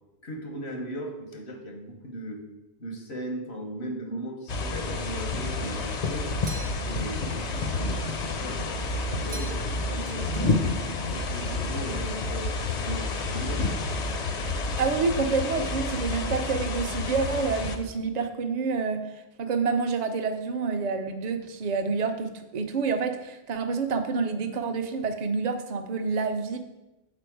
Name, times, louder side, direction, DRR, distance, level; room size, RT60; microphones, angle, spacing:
voice 1, 0.2-2.4 2.8-6.4 6.8-10.6 11.0-13.7, right 1 dB, 90° left, 3 dB, 1.3 m, -37 dB
sound 1, 4.5-17.8, left 3 dB, 50° left, 0.6 m, -29 dB
sound 2, 6.4-7.1 9.3-9.8 10.1-10.8, right 3 dB, 80° right, 1.0 m, -44 dB
voice 2, 14.8-19.0 19.4-26.6, right 4 dB, 50° right, 6 dB, 0.6 m, -28 dB
6.9 x 4.2 x 4.6 m, 1.0 s
omnidirectional pair, 1.0 m